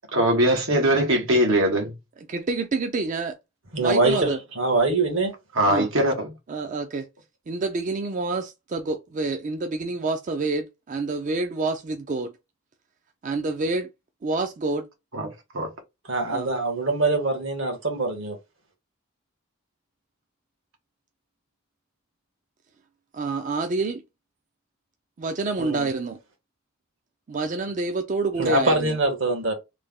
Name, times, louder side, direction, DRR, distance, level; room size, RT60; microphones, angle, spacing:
voice 1, 0.1-1.9 5.5-6.3 15.1-15.3 15.5-15.7, right 1 dB, 90° right, 1.2 m, -21 dB
voice 2, 2.3-3.4 3.8-4.4 5.7-5.9 6.5-7.1 7.5-12.3 13.2-13.9 14.2-14.9 16.3-16.5 23.1-24.0 25.2-26.2 27.3-29.0, right 3 dB, 40° right, 0.4 m, -27 dB
voice 3, 3.7-5.3 16.1-18.4 25.6-25.9 28.4-29.5, right 2 dB, 75° right, 1.5 m, -23 dB
3.3 x 2.2 x 3.5 m
head